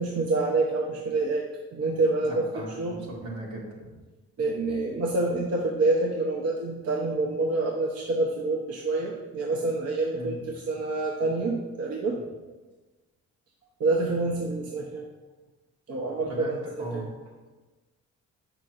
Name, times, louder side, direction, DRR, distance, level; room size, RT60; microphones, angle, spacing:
voice 1, 0.0-1.5 1.7-2.5 2.8-3.1 4.4-12.2 13.8-15.1 15.9-17.1, right 2 dB, 55° right, -1 dB, 0.8 m, -27 dB
voice 2, 2.2-3.0 3.2-3.9 10.1-10.3 16.2-16.5 16.8-17.1, right 2 dB, 80° right, -4 dB, 2.0 m, -37 dB
6.7 x 5.9 x 2.5 m, 1.2 s
cardioid pair, 90°, 30 cm